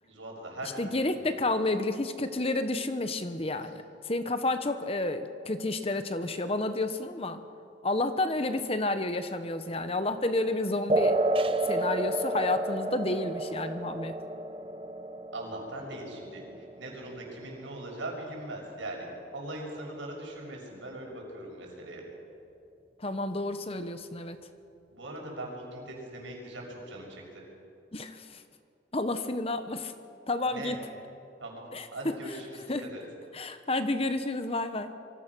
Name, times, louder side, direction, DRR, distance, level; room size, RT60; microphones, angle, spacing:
voice 1, 0.0-1.3 3.6-3.7 15.3-22.0 24.9-27.4 30.5-30.8 31.4-31.6 31.9-33.0, right 1 dB, 85° right, 0 dB, 6.5 m, -40 dB
voice 2, 0.8-7.4 7.8-11.2 11.7-14.2 23.0-24.4 27.9-28.4 28.9-29.9 30.3-30.8 31.7-32.1 32.7-32.9 33.3-35.0, left 2 dB, 30° left, 9 dB, 1.1 m, -30 dB
sound 1, 10.9-17.9, right 1 dB, 30° right, 0.8 m, -31 dB
26.5 x 24.0 x 6.3 m, 2.5 s
head